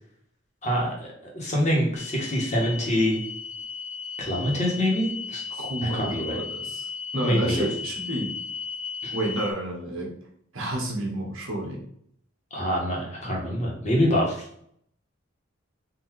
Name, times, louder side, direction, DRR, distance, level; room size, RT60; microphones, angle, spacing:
voice 1, 0.6-1.1 1.3-3.2 4.2-5.4 5.9-6.4 7.2-7.7 9.0-9.1 12.5-14.4, equal, 35° left, -2 dB, 1.4 m, -25 dB
sound 1, 1.9-9.5, left 5 dB, 70° left, 0.8 m, -36 dB
voice 2, 5.5-8.3 9.1-10.1 10.5-11.8, right 1 dB, 85° right, 0 dB, 1.3 m, -30 dB
3.9 x 2.7 x 4.6 m, 0.66 s
head